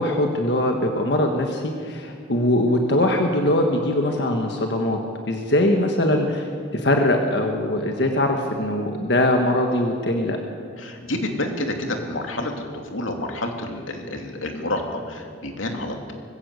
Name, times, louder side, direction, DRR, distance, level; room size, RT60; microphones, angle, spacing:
voice 1, 0.0-5.0 5.3-6.5 6.7-10.4, left 1 dB, 60° left, 3 dB, 1.5 m, -21 dB
voice 2, 10.8-16.1, left 1 dB, 90° left, 3 dB, 2.7 m, -29 dB
20.0 x 16.0 x 8.3 m, 2.2 s
head